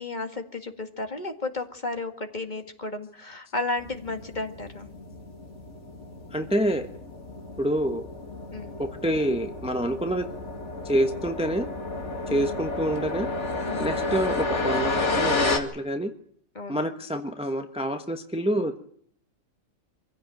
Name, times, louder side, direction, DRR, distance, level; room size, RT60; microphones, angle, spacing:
voice 1, 0.0-4.9 8.5-8.8 12.3-12.6 13.6-14.0 16.6-16.9, left 2 dB, 35° left, 6 dB, 2.1 m, -33 dB
sound 1, 3.8-15.6, left 2 dB, 60° left, 2.6 m, -31 dB
voice 2, 6.3-6.9 7.6-8.1 8.8-10.2 10.8-11.7 12.3-13.3 13.8-16.1 16.7-18.8, right 1 dB, 5° right, 6 dB, 1.1 m, -27 dB
25.0 x 16.0 x 9.2 m, 0.65 s
omnidirectional pair, 1.4 m